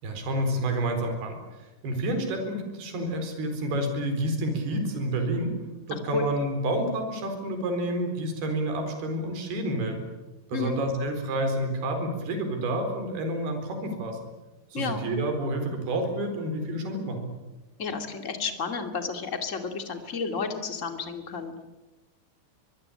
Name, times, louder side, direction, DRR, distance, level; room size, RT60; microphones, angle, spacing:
voice 1, 0.0-5.6 5.9-10.1 10.5-14.2 14.7-17.3, right 1 dB, 60° right, 5 dB, 6.0 m, -29 dB
voice 2, 5.9-6.3 10.5-10.8 14.7-15.0 17.8-21.6, left 5 dB, 25° left, 6 dB, 1.6 m, -32 dB
24.5 x 22.0 x 8.7 m, 1.1 s
omnidirectional pair, 5.2 m